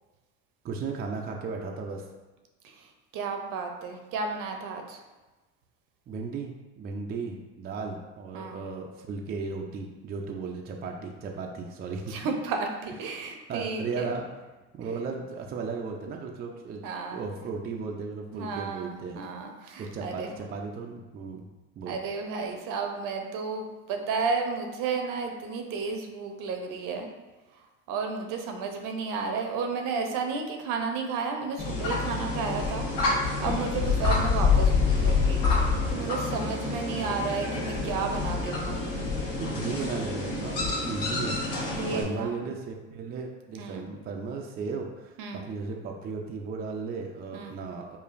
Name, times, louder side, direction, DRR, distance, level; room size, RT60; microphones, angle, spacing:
voice 1, 0.6-2.1 6.1-12.4 13.5-14.3 14.7-16.8 17.1-19.2 19.8-21.5 21.8-22.0 33.8-34.0 39.4-41.5 41.9-48.0, right 4 dB, 25° right, 1 dB, 0.4 m, -35 dB
voice 2, 2.6-5.0 8.3-8.6 12.1-14.1 16.8-17.2 18.3-20.3 21.9-27.1 27.9-32.9 33.4-35.4 35.9-38.9 41.7-42.4 43.6-43.8 45.2-45.4 47.3-47.5, right 4 dB, 60° right, 4 dB, 0.7 m, -32 dB
sound 1, 31.6-42.0, left 4 dB, 65° left, 1.1 m, -27 dB
4.9 x 2.4 x 2.5 m, 1.1 s
supercardioid pair, 85°, 37 cm